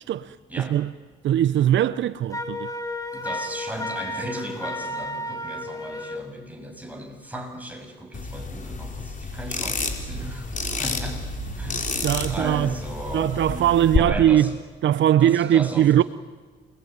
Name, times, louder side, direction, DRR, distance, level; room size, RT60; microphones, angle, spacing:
voice 1, 0.1-0.9 1.2-2.7 12.0-12.7 13.1-14.5 14.8-16.0, right 11 dB, 70° right, 0.8 m, -20 dB
Wind instrument woodwind instrument, 2.3-6.3, left 1 dB, 15° left, 2.8 m, -32 dB
voice 2, 3.1-11.2 11.6-11.9 12.3-14.5 15.2-15.9, right 1 dB, 10° right, 7.3 m, -36 dB
sound 1, 8.1-14.0, left 4 dB, 40° left, 4.5 m, -30 dB
sound 2, 9.0-12.7, right 11 dB, 85° right, 3.1 m, -39 dB
28.5 x 22.0 x 9.4 m
cardioid pair, 90°, 20 cm